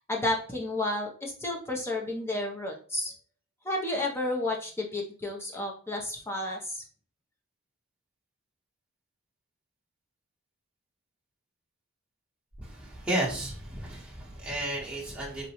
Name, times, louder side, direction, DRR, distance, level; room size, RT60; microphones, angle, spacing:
voice 1, 0.1-3.1 3.6-6.8, left 1 dB, 10° left, 0.5 m, -31 dB
voice 2, 12.6-15.5, right 1 dB, 5° right, 0.8 m, -33 dB
3.8 x 2.2 x 2.9 m
head